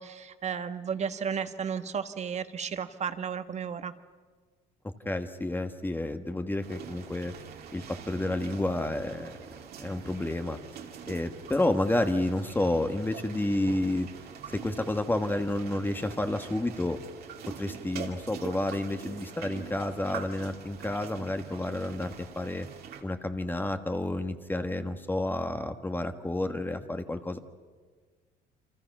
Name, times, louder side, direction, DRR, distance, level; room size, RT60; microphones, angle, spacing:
voice 1, 0.0-3.9, right 7 dB, 40° right, 10 dB, 1.5 m, -33 dB
voice 2, 5.0-7.3 7.7-9.4 9.8-10.6 11.1-14.1 14.5-17.0 17.6-22.7 23.0-27.4, left 1 dB, 10° left, 7 dB, 1.5 m, -30 dB
sound 1, 6.6-23.0, right 7 dB, 65° right, 2.7 m, -44 dB
28.5 x 26.0 x 6.1 m, 1.5 s
cardioid pair, 110°, 17 cm